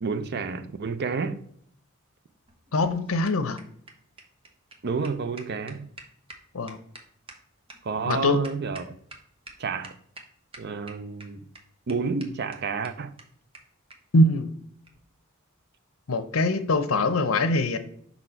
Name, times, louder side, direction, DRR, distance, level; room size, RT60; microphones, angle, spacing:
voice 1, 0.0-1.4 4.8-5.9 7.8-8.9 9.6-9.9 10.6-11.4 11.9-13.1, right 4 dB, 50° right, 0.5 m, -30 dB
sound 1, 2.5-9.2 9.5-9.6 9.8-10.2 10.5-11.2 11.5-11.6 11.9-12.0 12.2-12.3 12.5-12.6 12.8-12.9 13.2-13.3 13.5-13.6 13.9-14.0 14.8-15.0, right 2 dB, 25° right, 1.0 m, -45 dB
voice 2, 2.7-3.6 6.5-6.8 8.1-8.4 14.1-14.5 16.1-17.8, left 2 dB, 85° left, 0.8 m, -23 dB
5.7 x 4.2 x 4.4 m
head